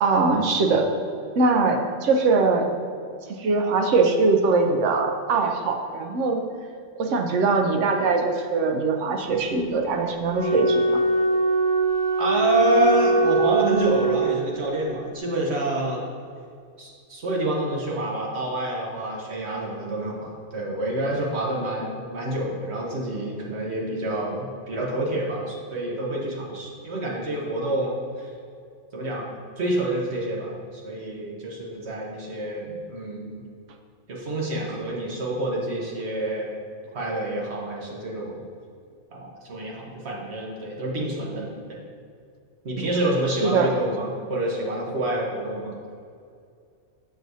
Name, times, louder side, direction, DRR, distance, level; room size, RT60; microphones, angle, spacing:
voice 1, 0.0-0.9 1.4-2.7 3.4-6.4 7.0-11.0 42.8-42.9 43.4-43.7, right 3 dB, 80° right, 4 dB, 1.0 m, -22 dB
Wind instrument woodwind instrument, 10.3-14.7, right 2 dB, 25° right, 0.8 m, -22 dB
voice 2, 12.2-16.0 16.8-28.3 28.9-33.4 34.1-36.5 36.9-38.4 39.1-41.8 42.6-45.7, right 2 dB, 65° right, -3 dB, 1.4 m, -27 dB
7.0 x 6.1 x 2.7 m, 2.3 s
omnidirectional pair, 1.2 m